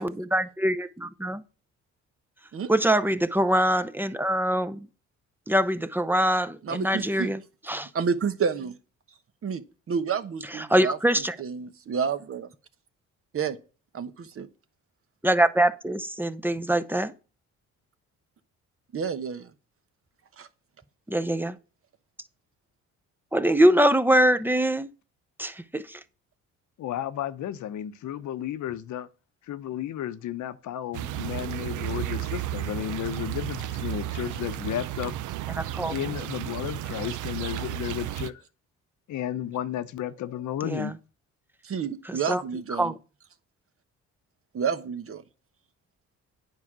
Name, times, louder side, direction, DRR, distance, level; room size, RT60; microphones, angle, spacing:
voice 1, 0.0-1.4 2.7-4.9 5.5-7.4 7.7-7.9 10.6-11.3 15.2-17.1 21.1-21.6 23.3-24.9 25.4-26.0 35.5-35.9 40.6-40.9 42.1-42.4 42.7-42.9, right 1 dB, 5° right, 0.6 m, -23 dB
voice 2, 6.6-7.3 7.9-8.8 9.4-9.6 9.9-12.5 13.3-13.6 13.9-14.5 18.9-19.5 20.4-20.5 41.6-42.9 44.5-45.2, right 6 dB, 45° right, 1.0 m, -30 dB
voice 3, 26.8-29.1 29.4-35.2 35.9-38.4 39.1-40.9, left 11 dB, 70° left, 0.8 m, -33 dB
sound 1, 30.9-38.3, right 14 dB, 80° right, 0.6 m, -33 dB
9.5 x 4.8 x 6.1 m
cardioid pair, 90°, 30 cm